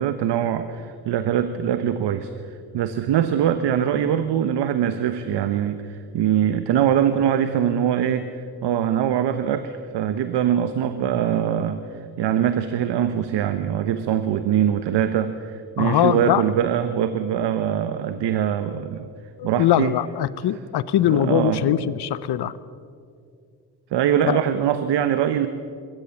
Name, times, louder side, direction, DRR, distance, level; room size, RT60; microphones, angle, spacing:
voice 1, 0.0-19.1 19.4-19.9 21.0-21.9 23.9-25.5, right 9 dB, 80° right, 10 dB, 1.0 m, -23 dB
voice 2, 15.8-16.4 19.4-22.5 24.3-24.4, left 11 dB, 70° left, 17 dB, 0.9 m, -21 dB
22.5 x 16.5 x 7.1 m, 2.3 s
supercardioid pair, 60°, 41 cm